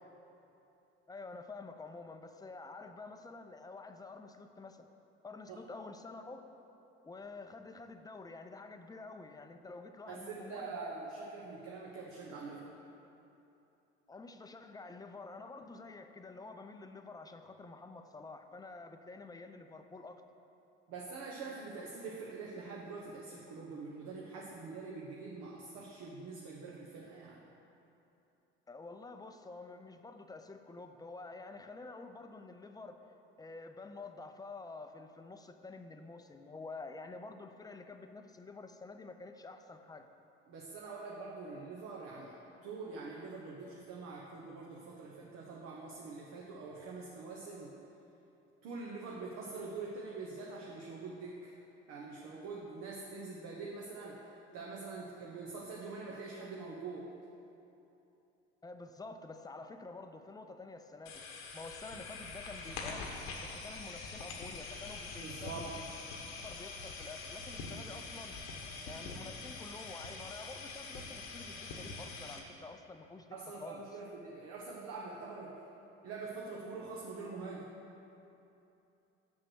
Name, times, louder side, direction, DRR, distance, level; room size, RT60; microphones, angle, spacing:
voice 1, 1.1-4.9 5.2-6.5 7.0-10.8 14.1-20.2 28.7-33.1 33.4-40.1 58.6-61.3 61.5-63.1 63.4-65.9 66.4-68.4 68.9-73.8, left 3 dB, 10° left, 7 dB, 0.6 m, -49 dB
voice 2, 10.1-12.7 20.9-27.4 40.5-42.3 42.6-47.7 48.6-51.6 51.9-54.3 54.5-57.1 65.2-65.7 73.3-75.6 76.0-77.6, right 4 dB, 60° right, -3 dB, 1.1 m, -44 dB
sound 1, 61.1-72.4, left 3 dB, 75° left, 1.2 m, -44 dB
6.3 x 6.0 x 6.2 m, 2.9 s
hypercardioid pair, 65°, 30 cm